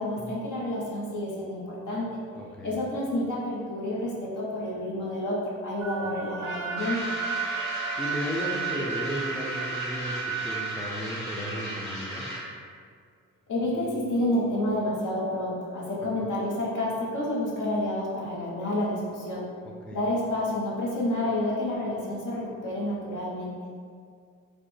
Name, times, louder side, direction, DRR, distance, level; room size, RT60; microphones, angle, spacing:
voice 1, 0.0-2.2 2.6-7.0 13.5-19.5 19.9-23.5, left 1 dB, 65° left, -5 dB, 0.9 m, -29 dB
voice 2, 2.3-2.8 6.0-6.1 8.0-12.3 16.0-16.1 19.6-20.0, equal, 5° left, -2 dB, 0.4 m, -35 dB
sound 1, 5.8-10.8, right 7 dB, 50° right, 0.5 m, -34 dB
Trumpet, 6.4-10.7, equal, 35° left, 1.0 m, -42 dB
sound 2, 6.8-12.6, equal, 85° left, 1.3 m, -35 dB
3.2 x 2.0 x 3.2 m, 2.2 s
supercardioid pair, 55°, 34 cm